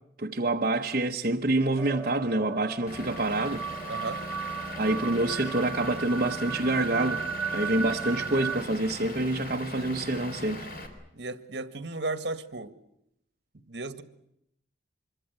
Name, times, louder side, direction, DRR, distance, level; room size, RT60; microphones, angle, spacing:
voice 1, 0.2-3.6 4.8-7.2 7.5-10.7, right 2 dB, 50° right, 1.0 m, -27 dB
sound 1, 1.8-8.6, right 6 dB, 5° right, 0.9 m, -35 dB
Vehicle / Engine, 2.9-10.9, left 1 dB, 50° left, 4.0 m, -40 dB
voice 2, 3.9-4.2 11.1-12.7 13.7-14.0, right 2 dB, 65° right, 1.7 m, -34 dB
25.5 x 23.0 x 8.1 m
head